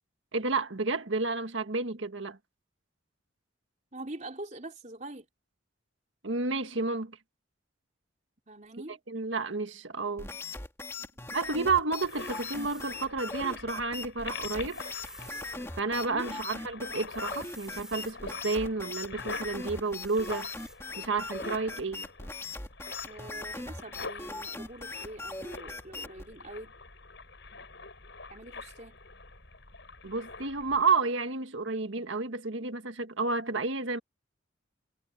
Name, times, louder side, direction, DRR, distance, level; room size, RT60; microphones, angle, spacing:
voice 1, 0.3-2.4 6.2-7.2 9.1-10.3 11.3-14.8 15.8-20.5 21.0-22.1 30.0-34.0, right 3 dB, 75° right, 1.6 m, -31 dB
voice 2, 3.9-5.3 8.5-9.0 11.0-11.1 16.1-16.4 23.1-26.7 28.3-29.0, right 1 dB, 40° right, 4.2 m, -44 dB
sound 1, 10.2-26.3, left 3 dB, 15° left, 2.4 m, -40 dB
sound 2, 11.9-13.0 14.4-15.6 17.1-18.2 19.8-20.8, right 1 dB, 5° right, 4.0 m, -50 dB
sound 3, 12.0-30.9, left 4 dB, 65° left, 7.7 m, -45 dB
head